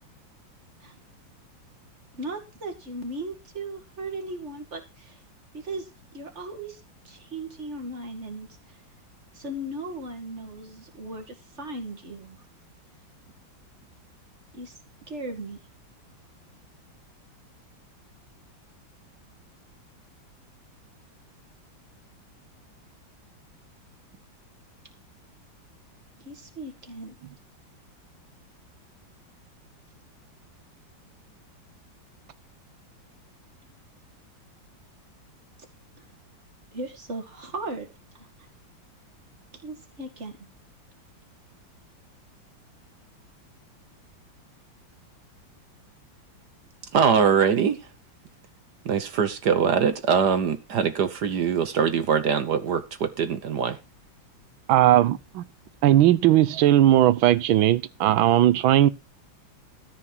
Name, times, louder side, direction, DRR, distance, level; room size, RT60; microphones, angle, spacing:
voice 1, 2.1-5.2 5.5-8.8 9.3-12.4 14.5-14.7 15.1-15.6 26.2-27.2 36.0-36.1 36.7-38.3 39.6-40.4, right 2 dB, 35° right, 2.5 m, -37 dB
voice 2, 46.9-47.8 48.8-53.8, right 7 dB, 60° right, 1.5 m, -22 dB
voice 3, 54.7-55.4 55.8-58.9, right 13 dB, 85° right, 1.6 m, -18 dB
13.5 x 4.7 x 7.2 m
omnidirectional pair, 2.1 m